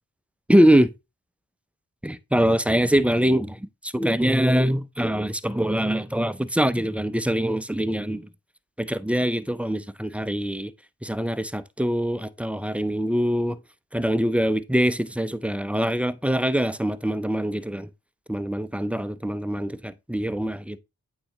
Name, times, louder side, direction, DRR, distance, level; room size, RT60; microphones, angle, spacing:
voice 1, 0.5-0.9 2.0-3.6 3.9-8.2 8.8-10.7 11.0-13.6 13.9-17.9 18.3-20.8, equal, 5° right, 0.3 m, -23 dB
8.6 x 4.0 x 2.9 m
cardioid pair, 50°, 35 cm